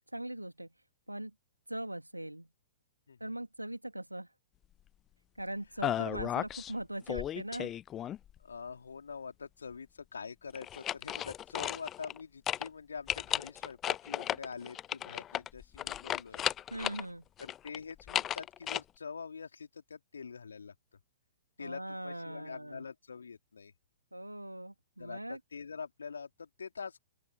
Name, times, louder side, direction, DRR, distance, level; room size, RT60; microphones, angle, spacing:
voice 1, 0.1-0.7 1.1-1.3 1.7-2.5 3.2-4.3 5.4-7.7 16.7-17.2 21.6-22.9 24.1-25.4, right 1 dB, 85° right, 3.2 m, -40 dB
sound 1, 5.8-6.7 7.1-8.4 10.5-12.2 12.5-12.7 13.1-17.0 17.4-18.8, left 11 dB, 20° left, 0.4 m, -35 dB
voice 2, 8.4-16.5 17.4-20.7 21.6-23.7 25.0-27.0, left 5 dB, 70° left, 3.4 m, -45 dB
open air
figure-of-eight pair, 110°, 0 cm